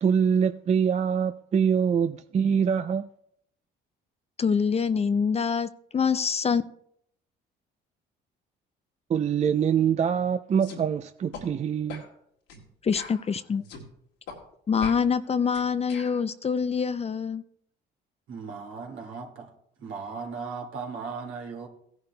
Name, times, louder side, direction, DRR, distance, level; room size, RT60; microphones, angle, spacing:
voice 1, 0.0-3.1 9.1-12.0, right 7 dB, 35° right, 0.4 m, -24 dB
voice 2, 4.4-6.6 12.8-13.6 14.7-17.4, left 6 dB, 30° left, 0.5 m, -25 dB
sound 1, 10.6-10.8 11.3-11.5 11.9-12.1 12.5-12.6 12.9-13.9 14.3-14.4 14.8-16.2, left 4 dB, 90° left, 2.2 m, -41 dB
voice 3, 18.3-19.5 19.8-21.7, right 5 dB, 70° right, 2.0 m, -37 dB
16.5 x 10.5 x 2.2 m
supercardioid pair, 70°, 21 cm